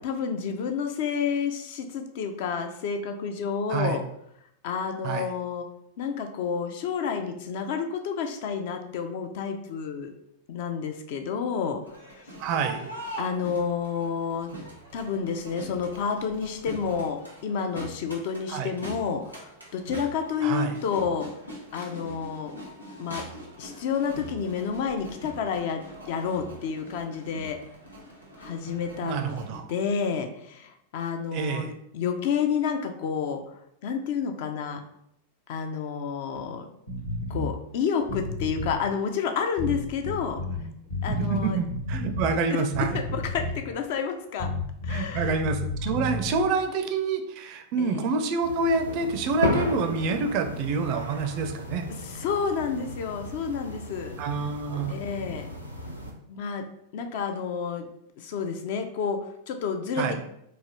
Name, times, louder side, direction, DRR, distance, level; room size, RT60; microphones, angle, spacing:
voice 1, 0.0-4.0 4.6-5.7 6.0-10.1 10.5-11.8 12.1-12.2 13.2-14.5 14.9-21.3 21.7-22.5 23.0-23.3 23.6-27.6 28.4-29.4 29.7-33.4 33.8-34.8 35.5-36.7 37.3-40.4 41.0-41.6 42.9-44.5 44.8-45.4 47.8-48.1 51.9-54.1 54.9-55.5 56.3-56.7 56.9-57.9 58.2-60.2, left 6 dB, 50° left, 6 dB, 0.4 m, -30 dB
Crowd, 11.8-29.6, right 1 dB, 85° left, 0.9 m, -43 dB
voice 2, 12.4-12.9 18.5-18.7 20.4-20.7 29.0-29.6 31.3-31.7 40.5-40.7 41.1-43.0 44.9-51.9 54.2-55.0 60.0-60.2, right 4 dB, 45° right, 7 dB, 0.4 m, -27 dB
sound 1, 36.9-37.5 38.0-38.8 39.6-40.6 40.9-42.4 42.7-43.7 44.4-46.5, left 2 dB, 65° left, 1.2 m, -31 dB
sound 2, 48.4-56.1, left 1 dB, 90° right, 0.6 m, -34 dB
4.0 x 2.4 x 2.9 m, 0.75 s
figure-of-eight pair, 90°, 0 cm